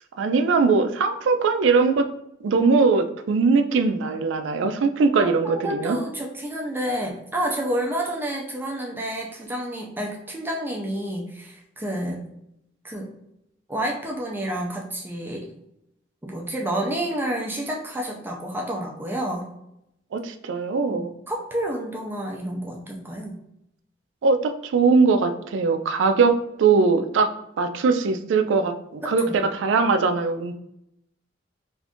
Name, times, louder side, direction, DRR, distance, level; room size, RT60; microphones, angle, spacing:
voice 1, 0.2-2.0 2.4-6.0 20.1-21.1 24.2-26.3 26.6-27.3 27.6-29.2 29.5-30.5, right 4 dB, 85° right, 8 dB, 0.4 m, -20 dB
voice 2, 5.2-12.2 12.8-13.1 13.7-15.5 16.2-19.5 20.9-23.4 29.0-29.4, right 1 dB, 10° right, -1 dB, 0.4 m, -29 dB
2.6 x 2.4 x 3.5 m, 0.79 s
head